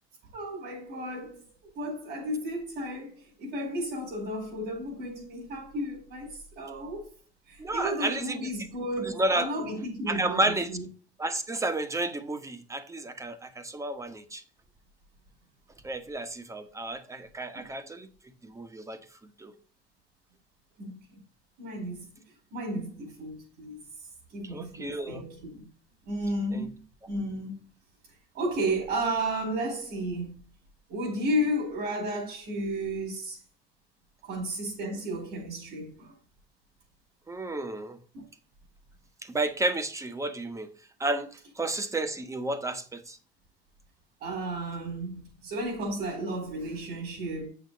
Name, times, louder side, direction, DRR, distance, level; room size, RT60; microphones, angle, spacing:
voice 1, 0.3-1.4 1.7-7.1 7.5-10.4 10.7-10.8 17.5-17.7 20.8-20.9 21.6-22.1 22.5-23.8 24.3-25.6 26.1-26.7 27.1-27.6 28.3-30.4 30.9-33.4 34.2-36.1 38.1-38.2 44.2-47.5, right 1 dB, 80° right, 4.5 m, -33 dB
voice 2, 7.6-8.5 9.0-9.7 10.1-10.7 11.2-14.4 15.8-18.1 18.4-19.0 19.4-19.5 24.4-25.2 26.5-26.7 37.3-38.0 39.2-40.7 41.0-43.2, right 2 dB, 20° right, 1.3 m, -31 dB
8.0 x 6.8 x 4.0 m
cardioid pair, 110°, 17 cm